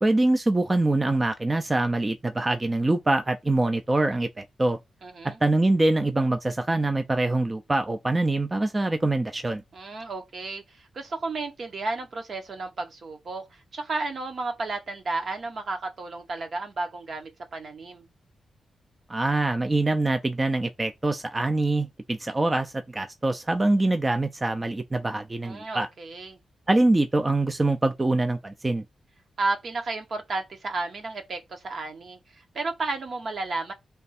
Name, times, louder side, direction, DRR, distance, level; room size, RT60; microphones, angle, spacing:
voice 1, 0.0-4.8 5.4-9.6 19.1-25.9 26.7-28.8, right 2 dB, 25° right, 0.5 m, -24 dB
voice 2, 5.0-5.4 9.7-18.1 25.4-26.4 29.4-33.7, right 3 dB, 60° right, 0.9 m, -33 dB
3.4 x 2.3 x 4.1 m
cardioid pair, 70°, 0 cm